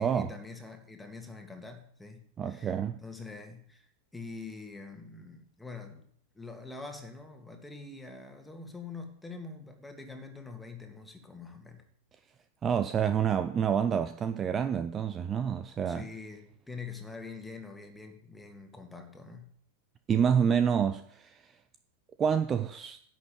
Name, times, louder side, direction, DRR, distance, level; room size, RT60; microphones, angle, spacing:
voice 1, 0.0-2.7 3.0-6.0 6.3-11.8 15.9-19.5, left 4 dB, 5° left, 2.2 m, -45 dB
voice 2, 2.4-3.0 12.6-16.1 20.1-21.4 22.2-23.0, right 7 dB, 25° right, 0.6 m, -28 dB
11.0 x 6.0 x 8.9 m
figure-of-eight pair, 90°, 0 cm